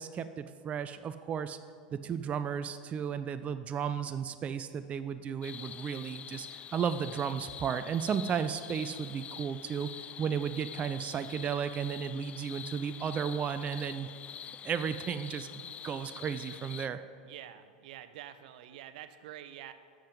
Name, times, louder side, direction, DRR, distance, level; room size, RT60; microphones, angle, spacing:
voice 1, 0.0-1.6 1.9-6.5 6.7-9.9 10.2-14.1 14.6-15.5 15.8-17.0, right 7 dB, 30° right, 11 dB, 0.4 m, -34 dB
sound 1, 5.4-16.9, left 8 dB, 30° left, 0.3 m, -46 dB
voice 2, 17.2-19.7, right 11 dB, 70° right, 11 dB, 0.7 m, -47 dB
12.5 x 7.5 x 5.2 m, 2.2 s
hypercardioid pair, 95°, 4 cm